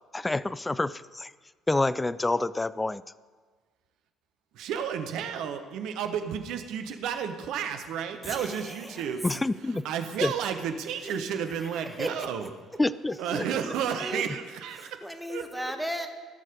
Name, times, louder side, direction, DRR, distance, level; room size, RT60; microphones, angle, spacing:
voice 1, 0.1-1.3 1.7-3.0 9.2-9.8 10.2-10.3 12.8-13.2, left 2 dB, 15° left, 17 dB, 0.4 m, -27 dB
voice 2, 4.5-9.4 9.8-12.5 13.2-15.0 15.3-15.7, right 8 dB, 60° right, 7 dB, 1.1 m, -32 dB
voice 3, 8.2-9.1 11.0-12.5 13.3-13.4 13.9-14.2 14.8-16.1, equal, ahead, 6 dB, 1.4 m, -37 dB
17.0 x 6.5 x 5.2 m, 1.5 s
figure-of-eight pair, 55°, 0 cm